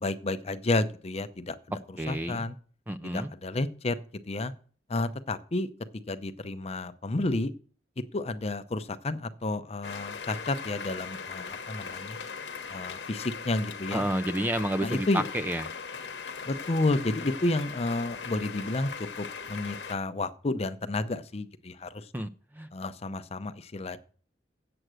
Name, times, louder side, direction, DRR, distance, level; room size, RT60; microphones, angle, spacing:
voice 1, 0.0-1.6 2.1-2.5 3.0-4.0 4.3-4.5 4.9-5.7 6.1-7.5 8.1-12.2 12.7-14.1 14.8-15.2 16.5-18.9 19.2-22.0 22.7-24.0, left 2 dB, 35° left, 11 dB, 0.6 m, -31 dB
voice 2, 2.0-2.5 2.9-3.3 13.9-15.7 22.1-22.3 22.5-22.7, right 1 dB, 10° right, 10 dB, 0.4 m, -30 dB
sound 1, 9.8-20.0, left 5 dB, 80° left, 1.1 m, -39 dB
7.9 x 7.7 x 6.2 m, 0.43 s
head